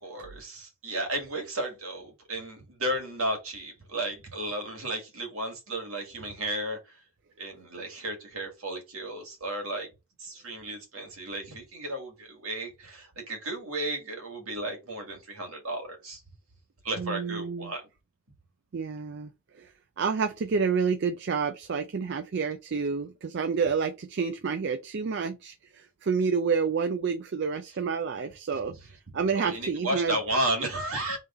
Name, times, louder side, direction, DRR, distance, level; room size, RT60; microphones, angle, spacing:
voice 1, 0.0-7.0 7.4-9.9 10.2-16.2 16.8-17.9 29.3-31.2, right 1 dB, 70° right, 2.0 m, -33 dB
voice 2, 17.0-17.7 18.7-19.3 19.6-19.7 20.0-28.7 29.1-30.2, right 5 dB, 50° right, 0.4 m, -29 dB
3.6 x 3.5 x 4.2 m
head